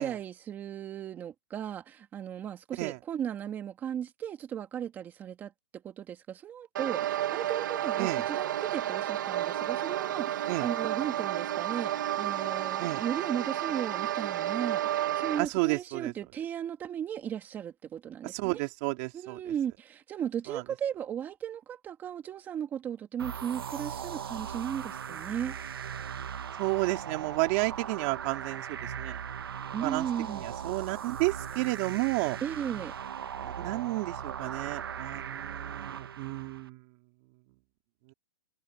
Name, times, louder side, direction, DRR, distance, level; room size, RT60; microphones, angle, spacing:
voice 1, 0.0-5.5 5.8-18.6 19.1-25.6 29.7-30.4 32.4-32.9, right 9 dB, 15° right, 2.2 m, -36 dB
sound 1, 6.8-15.4, right 12 dB, 60° right, 1.8 m, -31 dB
voice 2, 15.4-16.1 18.2-19.5 20.5-20.6 26.6-29.2 29.8-30.1 30.3-32.4 33.4-36.9 38.1-38.2, right 25 dB, 35° right, 3.4 m, -32 dB
sound 2, 23.2-36.7, right 8 dB, 85° right, 1.5 m, -39 dB
hypercardioid pair, 160°, 12 cm